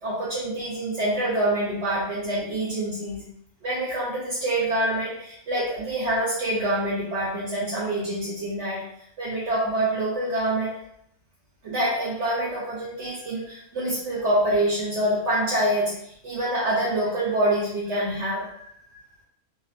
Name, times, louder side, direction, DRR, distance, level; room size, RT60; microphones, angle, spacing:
voice 1, 0.0-3.2 3.6-8.8 9.2-10.8 11.6-19.0, right 1 dB, 60° right, -6 dB, 0.8 m, -26 dB
2.8 x 2.1 x 2.5 m, 0.74 s
omnidirectional pair, 1.6 m